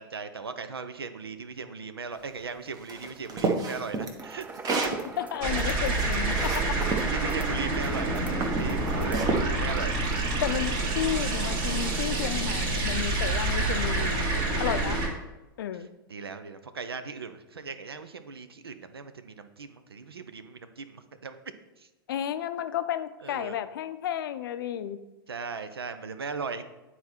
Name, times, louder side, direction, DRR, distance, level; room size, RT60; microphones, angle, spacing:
voice 1, 0.0-4.8 7.1-10.0 15.7-21.4 21.8-21.9 23.2-23.6 25.3-26.6, right 5 dB, 85° right, 10 dB, 0.6 m, -38 dB
sound 1, 2.9-5.0 5.5-7.1 7.8-8.0 8.4-9.4, right 4 dB, 30° right, 1.1 m, -30 dB
sound 2, 4.2-9.3, right 4 dB, 15° right, 0.4 m, -41 dB
voice 2, 5.2-6.9 10.4-14.3 14.6-15.0 15.6-15.9 22.1-25.0, left 10 dB, 65° left, 12 dB, 0.5 m, -32 dB
sound 3, 5.4-15.1, right 2 dB, 45° right, 1.9 m, -28 dB
9.3 x 4.2 x 4.4 m, 1.0 s
figure-of-eight pair, 95°, 12 cm